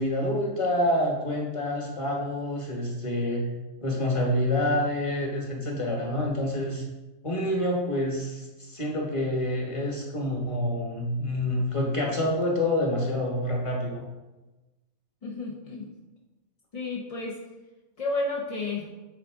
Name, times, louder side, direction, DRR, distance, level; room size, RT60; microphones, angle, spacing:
voice 1, 0.0-3.5 3.8-6.8 7.2-14.0, left 1 dB, 25° left, -1 dB, 1.2 m, -27 dB
voice 2, 15.2-15.9 16.7-17.4 18.0-18.9, left 2 dB, 40° left, -2 dB, 0.5 m, -31 dB
8.4 x 4.0 x 3.6 m, 1.1 s
omnidirectional pair, 1.6 m